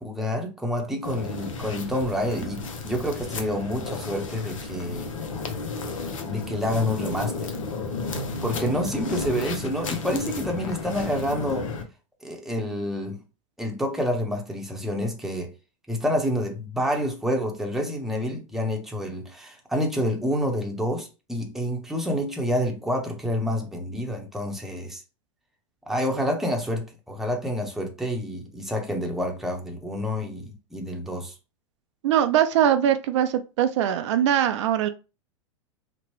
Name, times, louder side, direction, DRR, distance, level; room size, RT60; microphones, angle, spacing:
voice 1, 0.0-5.1 6.2-7.5 8.4-11.7 12.2-13.2 13.6-15.5 15.9-25.0 25.9-31.3, equal, ahead, 0.7 m, -28 dB
sound 1, 1.0-11.8, left 3 dB, 85° left, 0.7 m, -33 dB
voice 2, 32.0-34.9, right 10 dB, 65° right, 0.4 m, -21 dB
2.9 x 2.1 x 3.0 m
hypercardioid pair, 105°, 16 cm